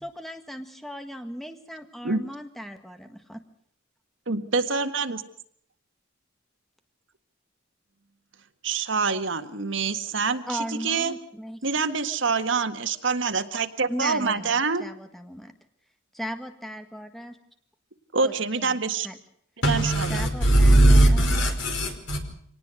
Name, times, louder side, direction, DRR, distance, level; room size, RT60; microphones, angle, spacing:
voice 1, 0.0-3.4 10.3-11.6 13.9-15.5 16.1-17.4 18.2-18.3 18.6-18.8 19.0-19.2 20.1-21.2, equal, ahead, 1.7 m, -37 dB
voice 2, 4.3-5.2 8.6-11.1 11.6-14.8 18.1-19.1 19.7-20.2, right 4 dB, 75° right, 1.8 m, -26 dB
voice 3, 19.6-22.2, right 1 dB, 70° left, 5.1 m, -19 dB
25.5 x 19.0 x 6.4 m
head